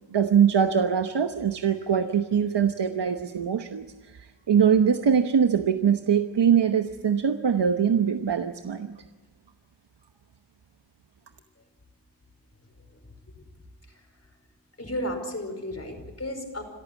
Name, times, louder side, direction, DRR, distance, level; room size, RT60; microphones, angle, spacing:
voice 1, 0.1-3.9 4.1-9.0, right 7 dB, 70° right, 7 dB, 1.0 m, -22 dB
voice 2, 14.8-16.6, left 1 dB, 35° left, 5 dB, 5.1 m, -34 dB
26.5 x 14.5 x 8.4 m, 1.3 s
wide cardioid pair, 90°, 43 cm